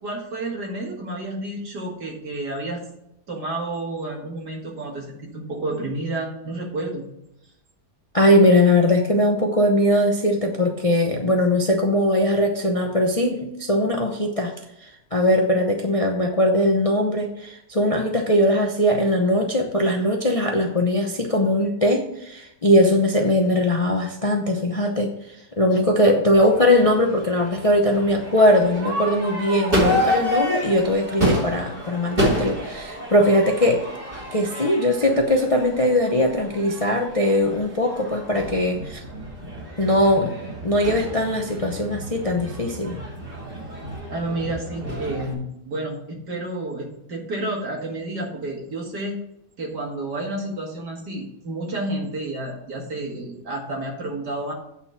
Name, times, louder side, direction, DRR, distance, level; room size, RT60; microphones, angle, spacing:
voice 1, 0.0-2.8 3.3-7.0 44.1-49.2 49.6-54.5, right 2 dB, 70° right, -1 dB, 2.8 m, -30 dB
voice 2, 8.1-14.5 14.8-33.8 34.3-39.0 39.8-40.3 40.6-43.0, left 1 dB, 30° left, 2 dB, 0.6 m, -20 dB
Crowd / Fireworks, 26.3-45.3, equal, 30° right, 3.0 m, -29 dB
8.7 x 4.3 x 7.3 m, 0.80 s
omnidirectional pair, 1.8 m